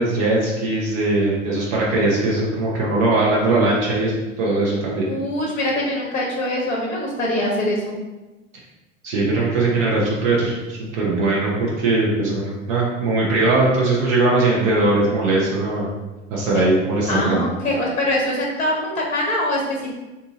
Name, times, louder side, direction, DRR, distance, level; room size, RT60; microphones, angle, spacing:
voice 1, 0.0-5.1 9.0-15.9 16.3-17.5, right 2 dB, 70° right, -4 dB, 1.0 m, -20 dB
voice 2, 5.1-8.0 16.5-16.6 17.1-19.9, left 1 dB, 20° left, -2 dB, 0.7 m, -23 dB
2.7 x 2.6 x 3.8 m, 1.1 s
hypercardioid pair, 80°, 39 cm